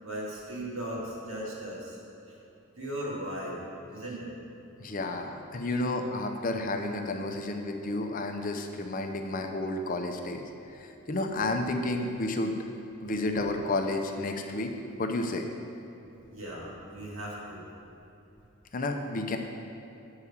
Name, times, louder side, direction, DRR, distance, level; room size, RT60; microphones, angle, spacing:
voice 1, 0.0-2.0 2.3-2.4 2.8-3.6 3.9-4.3 16.3-17.6, right 1 dB, 65° right, -5 dB, 2.2 m, -37 dB
voice 2, 4.8-10.4 10.7-12.5 13.0-14.7 15.0-15.5 18.7-19.4, left 2 dB, 40° left, 4 dB, 0.6 m, -31 dB
8.3 x 4.8 x 7.1 m, 2.9 s
head